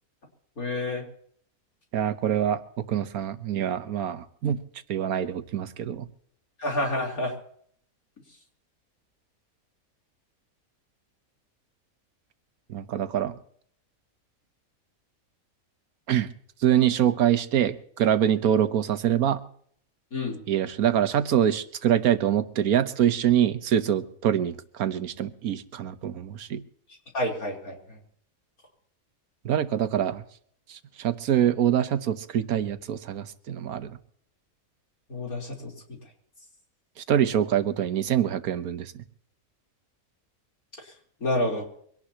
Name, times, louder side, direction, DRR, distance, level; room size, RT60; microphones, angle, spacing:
voice 1, 0.6-1.1 5.2-5.3 6.6-7.3 20.1-20.4 27.1-28.0 35.1-36.0 40.8-40.9 41.2-41.7, left 1 dB, 85° left, -1 dB, 4.4 m, -29 dB
voice 2, 1.9-4.6 4.9-6.1 12.7-13.4 16.1-16.3 16.6-19.4 20.5-26.6 29.4-30.2 30.7-34.0 37.0-39.0, right 10 dB, 90° right, 12 dB, 1.4 m, -25 dB
24.0 x 18.0 x 2.9 m, 0.63 s
omnidirectional pair, 1.5 m